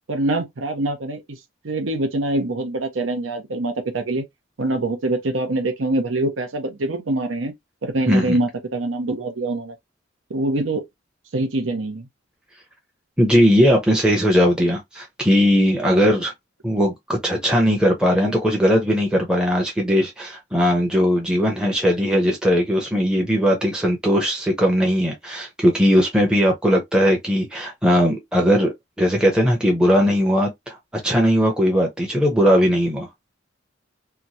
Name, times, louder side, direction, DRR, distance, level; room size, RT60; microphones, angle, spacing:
voice 1, 0.1-4.2 4.6-7.5 7.8-9.7 10.3-10.9 11.3-12.1, right 2 dB, 90° right, 0.8 m, -24 dB
voice 2, 13.2-16.3 16.6-33.1, equal, 5° right, 0.6 m, -19 dB
2.9 x 2.3 x 2.7 m
head